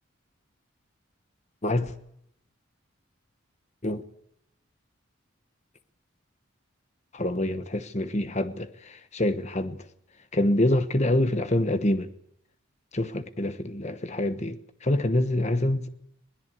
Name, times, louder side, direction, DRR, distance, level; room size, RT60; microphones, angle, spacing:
voice 1, 1.6-1.9 3.8-4.0 7.1-9.8 10.3-12.1 12.9-15.9, left 1 dB, 35° left, 1.1 m, -26 dB
22.0 x 20.0 x 8.3 m
head